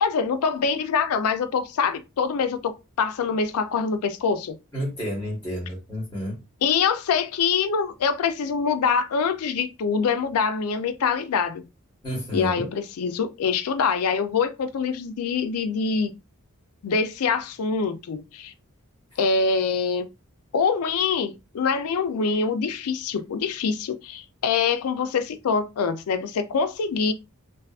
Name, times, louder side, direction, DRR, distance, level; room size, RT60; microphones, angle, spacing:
voice 1, 0.0-4.6 6.6-11.6 12.3-16.1 16.8-18.5 19.2-20.1 20.5-27.1, left 5 dB, 85° left, 0.4 m, -24 dB
voice 2, 4.7-6.4 12.0-12.7, equal, 15° left, 1.1 m, -30 dB
2.5 x 2.4 x 2.3 m
head